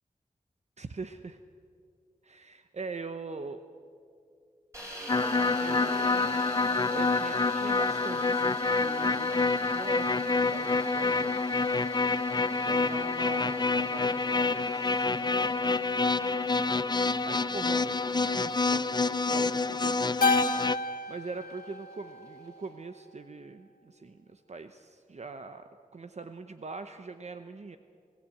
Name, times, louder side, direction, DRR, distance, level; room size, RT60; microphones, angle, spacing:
voice 1, 0.8-1.4 2.2-3.6 5.6-6.6 6.8-11.4 12.5-15.9 17.2-27.8, right 4 dB, 50° right, 8 dB, 0.8 m, -43 dB
sound 1, 4.7-22.7, equal, 20° right, 5.4 m, -47 dB
sound 2, 5.1-20.8, left 3 dB, 30° left, 0.5 m, -27 dB
Keyboard (musical), 20.2-22.7, left 3 dB, 80° left, 0.8 m, -31 dB
26.5 x 17.0 x 8.5 m, 2.4 s
wide cardioid pair, 100°, 14 cm